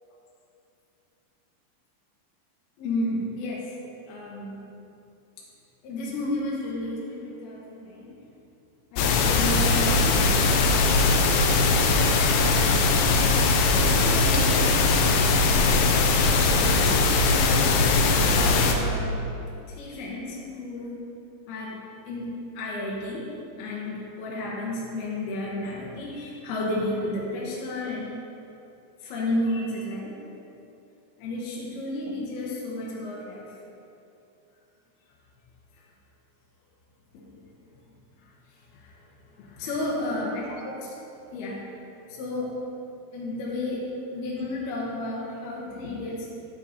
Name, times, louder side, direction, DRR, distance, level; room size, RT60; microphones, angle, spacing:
voice 1, 2.8-3.7 4.1-4.6 5.8-8.1 8.9-11.0 11.7-12.4 13.8-15.3 16.4-17.0 18.2-19.2 19.7-21.1 21.5-21.8 22.1-23.3 23.6-28.1 29.0-30.2 31.2-33.4 38.8-38.9 39.4-40.9 41.3-41.6 42.1-42.6 43.1-46.3, left 1 dB, 70° left, -5 dB, 2.9 m, -32 dB
sound 1, 9.0-18.7, left 3 dB, 85° left, 3.2 m, -20 dB
10.5 x 7.1 x 4.3 m, 2.7 s
omnidirectional pair, 5.3 m